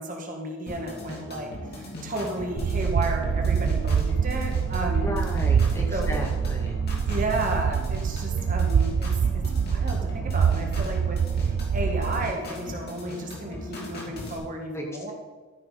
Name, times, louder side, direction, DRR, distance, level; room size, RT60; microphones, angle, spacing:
voice 1, 0.0-5.1 5.9-6.2 7.1-15.1, right 1 dB, 35° right, 2 dB, 1.6 m, -33 dB
sound 1, 0.7-14.4, left 1 dB, 45° left, 2.4 m, -39 dB
sound 2, 2.6-12.3, right 7 dB, 85° right, 0.4 m, -25 dB
voice 2, 5.0-6.7 14.7-15.1, equal, 10° left, 1 dB, 1.0 m, -34 dB
13.5 x 6.0 x 5.5 m, 1.4 s
head